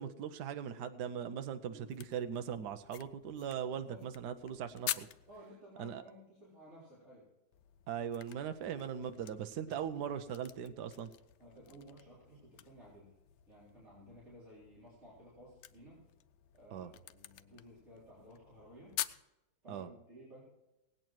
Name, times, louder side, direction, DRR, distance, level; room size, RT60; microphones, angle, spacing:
voice 1, 0.0-5.1 5.8-6.0 7.9-11.1 16.7-16.9 19.7-19.9, right 8 dB, 70° right, 9 dB, 1.3 m, -40 dB
sound 1, 1.9-5.5 7.5-19.2, left 12 dB, 75° left, 1.2 m, -47 dB
voice 2, 3.6-4.0 5.3-7.3 9.6-9.9 11.4-13.1 13.5-16.0 16.5-18.9 19.6-20.4, equal, 40° right, -9 dB, 4.4 m, -56 dB
18.5 x 8.9 x 4.6 m, 0.96 s
omnidirectional pair, 1.9 m